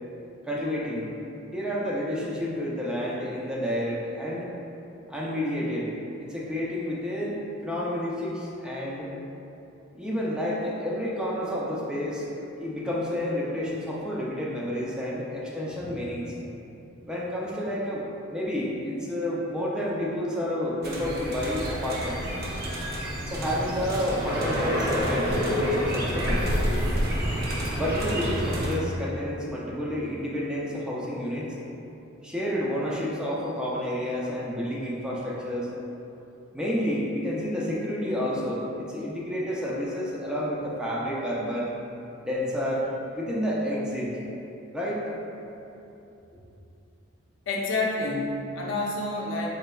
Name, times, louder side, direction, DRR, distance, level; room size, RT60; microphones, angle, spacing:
voice 1, 0.5-1.1 1.5-4.5 5.1-5.9 6.2-9.1 9.9-12.2 12.6-16.3 17.1-22.2 23.2-26.4 27.7-31.5 32.2-35.7 36.5-41.7 42.2-42.9 43.1-44.2 44.7-45.1, equal, 5° right, -6 dB, 0.4 m, -30 dB
sound 1, 20.8-28.8, equal, 50° right, 0.7 m, -28 dB
voice 2, 47.5-49.5, left 2 dB, 70° left, -2 dB, 0.6 m, -28 dB
4.1 x 3.8 x 2.3 m, 2.9 s
head